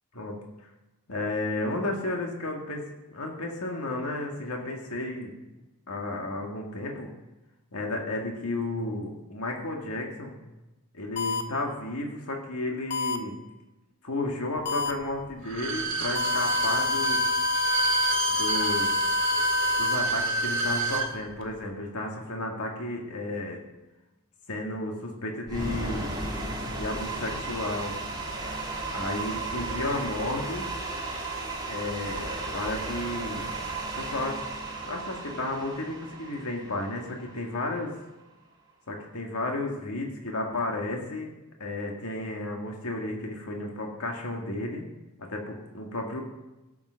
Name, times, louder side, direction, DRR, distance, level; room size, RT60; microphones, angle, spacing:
voice 1, 1.1-5.3 5.9-7.1 7.7-10.4 10.9-13.4 14.0-17.2 18.3-18.9 19.8-23.6 24.5-26.2 26.8-28.0 28.9-30.7 31.7-33.5 34.0-34.4 34.9-37.9 38.9-41.3 41.6-44.9 45.2-46.2, left 2 dB, 75° left, 1 dB, 1.9 m, -33 dB
sound 1, 11.2-11.4 12.9-13.2 14.7-14.9 16.2-20.0, left 5 dB, 50° left, 0.9 m, -28 dB
Bowed string instrument, 15.4-21.1 21.4-21.5, right 4 dB, 60° right, 1.7 m, -28 dB
sound 2, 25.5-37.6, right 2 dB, 20° right, 2.4 m, -35 dB
16.5 x 7.2 x 6.3 m, 1.0 s
head